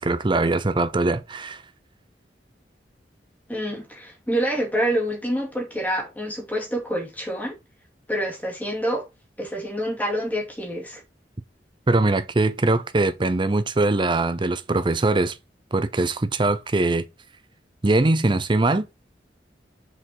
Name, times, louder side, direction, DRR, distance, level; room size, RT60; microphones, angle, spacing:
voice 1, 0.0-1.6 11.9-15.3 15.7-17.0 17.8-18.9, right 2 dB, 25° right, 0.6 m, -22 dB
voice 2, 3.5-7.5 8.1-9.1 9.4-11.0, equal, 10° left, 2.5 m, -27 dB
6.2 x 5.1 x 4.4 m
head